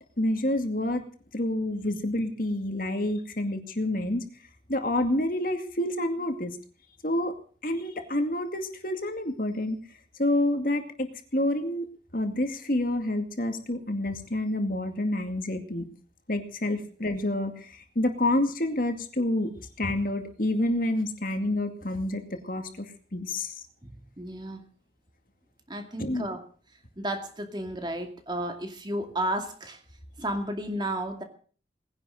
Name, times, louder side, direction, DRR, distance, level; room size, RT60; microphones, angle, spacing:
voice 1, 0.2-1.0 1.3-4.3 4.7-6.6 7.0-7.3 7.6-9.8 10.2-11.9 12.1-15.9 16.3-23.6 26.0-26.3, left 1 dB, 50° left, 6 dB, 2.3 m, -28 dB
voice 2, 23.8-24.6 25.7-26.4 27.0-29.8 30.2-31.2, right 1 dB, 25° right, 6 dB, 2.3 m, -33 dB
19.5 x 11.0 x 6.5 m, 0.43 s
head